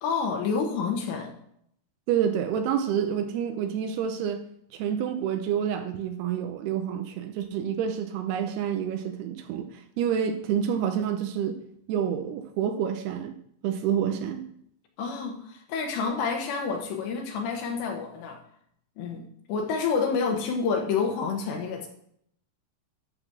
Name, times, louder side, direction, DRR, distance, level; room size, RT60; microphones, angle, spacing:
voice 1, 0.0-1.4 15.0-18.4 19.0-21.9, left 5 dB, 75° left, 2 dB, 3.2 m, -28 dB
voice 2, 2.1-4.4 4.7-11.6 11.9-13.4 13.6-14.5, right 8 dB, 80° right, 7 dB, 2.4 m, -28 dB
11.5 x 4.1 x 7.2 m, 0.70 s
omnidirectional pair, 5.3 m